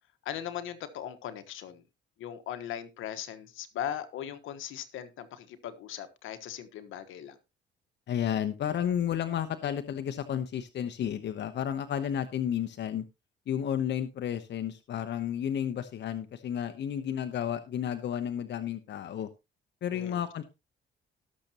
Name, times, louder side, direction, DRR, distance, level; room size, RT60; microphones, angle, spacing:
voice 1, 0.2-1.8 2.2-7.4 19.9-20.2, left 10 dB, 85° left, 1.4 m, -39 dB
voice 2, 8.1-13.0 13.5-19.3 19.8-20.4, left 9 dB, 60° left, 0.9 m, -32 dB
18.0 x 6.7 x 2.9 m
cardioid pair, 90°, 20 cm